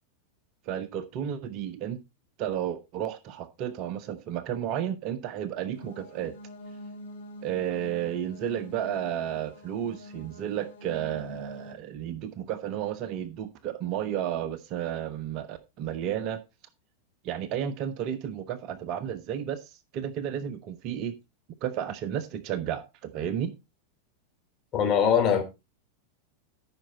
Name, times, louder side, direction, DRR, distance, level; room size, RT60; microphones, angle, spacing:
voice 1, 0.7-2.0 2.4-6.3 7.4-16.4 17.2-21.1 21.6-23.5, right 10 dB, 40° right, 1.1 m, -32 dB
sound 1, 5.7-11.7, equal, 65° left, 4.9 m, -45 dB
voice 2, 24.7-25.4, left 7 dB, 30° left, 3.2 m, -22 dB
13.5 x 6.3 x 4.2 m
figure-of-eight pair, 90°, 0 cm